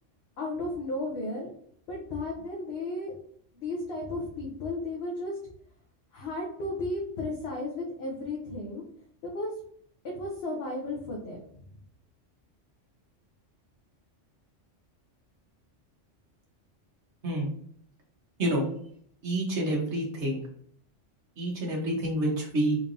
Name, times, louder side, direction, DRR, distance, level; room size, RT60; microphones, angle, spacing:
voice 1, 0.4-1.5 1.9-3.1 3.5-5.4 6.1-8.8 9.2-9.5 10.0-11.4, left 2 dB, 60° left, -2 dB, 1.0 m, -34 dB
voice 2, 19.2-20.4 21.4-22.8, right 1 dB, 65° right, -1 dB, 1.4 m, -28 dB
3.9 x 3.3 x 2.6 m, 0.64 s
omnidirectional pair, 1.3 m